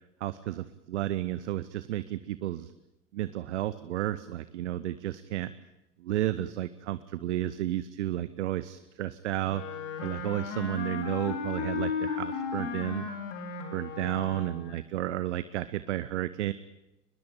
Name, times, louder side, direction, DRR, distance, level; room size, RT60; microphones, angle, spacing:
voice 1, 0.2-2.7 3.1-5.5 6.0-13.1 13.7-16.5, right 13 dB, 70° right, 15 dB, 1.0 m, -32 dB
Wind instrument woodwind instrument, 9.4-14.8, left 5 dB, 65° left, 4.5 m, -35 dB
23.0 x 21.0 x 9.0 m, 0.94 s
figure-of-eight pair, 60°, 37 cm